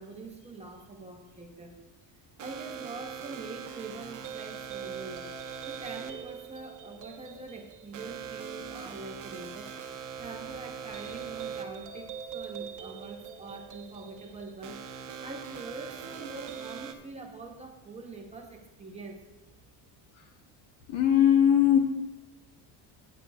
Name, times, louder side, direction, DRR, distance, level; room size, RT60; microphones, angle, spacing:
voice 1, 0.0-1.7 2.4-9.8 10.2-19.2, right 3 dB, 15° right, 1 dB, 0.8 m, -44 dB
sound 1, 2.4-16.9, right 7 dB, 40° right, 0.9 m, -41 dB
voice 2, 20.9-21.8, left 10 dB, 85° left, 3 dB, 1.2 m, -20 dB
15.0 x 9.4 x 2.3 m, 1.0 s
cardioid pair, 175°, 45 cm